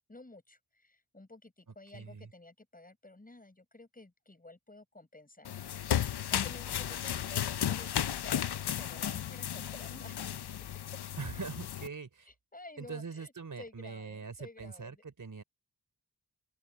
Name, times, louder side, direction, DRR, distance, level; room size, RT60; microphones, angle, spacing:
voice 1, 0.1-5.5 6.3-10.3 12.2-15.0, left 2 dB, 20° left, 6.4 m, -52 dB
voice 2, 1.9-2.3 11.2-12.3 12.8-15.4, right 5 dB, 50° right, 4.7 m, -42 dB
sound 1, 5.4-11.9, left 10 dB, 80° left, 0.9 m, -34 dB
open air
cardioid pair, 75°, 39 cm